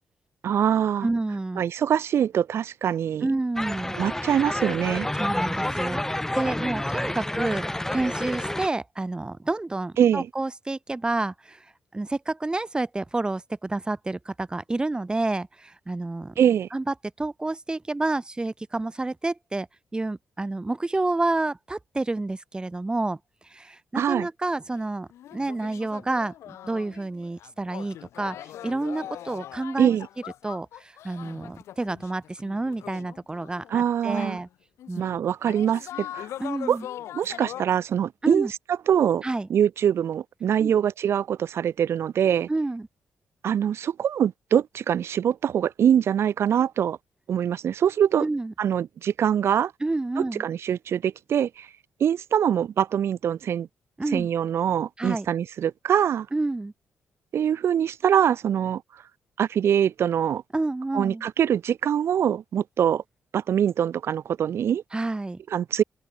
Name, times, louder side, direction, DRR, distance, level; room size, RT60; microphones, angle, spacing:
voice 1, 0.4-1.1 1.6-3.3 3.9-5.1 10.0-10.3 16.4-16.7 23.9-24.3 29.8-30.1 33.7-34.4 35.0-36.3 36.7-36.8 37.1-38.5 38.9-39.2 39.5-42.5 43.4-47.0 47.3-48.3 48.6-49.7 50.2-51.7 52.0-53.7 54.1-56.3 57.3-58.8 59.4-60.4 60.9-63.0 63.3-64.8 65.5-65.8, right 9 dB, 70° right, 1.8 m, -23 dB
voice 2, 1.0-1.6 3.2-4.0 5.2-11.6 11.9-16.3 16.7-19.7 19.9-23.2 23.5-28.4 28.6-29.9 30.4-34.5 34.9-35.5 36.4-36.9 38.2-38.5 39.2-39.5 40.6-40.8 42.5-42.9 48.2-48.5 49.8-50.5 54.0-54.3 55.0-55.3 56.3-56.7 60.5-61.2 64.9-65.4, right 2 dB, 20° right, 4.9 m, -29 dB
sound 1, 3.6-8.7, left 1 dB, 10° left, 2.7 m, -29 dB
sound 2, 24.7-24.8 25.1-34.3 34.8-35.1 35.5-37.6, left 12 dB, 90° left, 6.3 m, -41 dB
open air
cardioid pair, 90°, 5 cm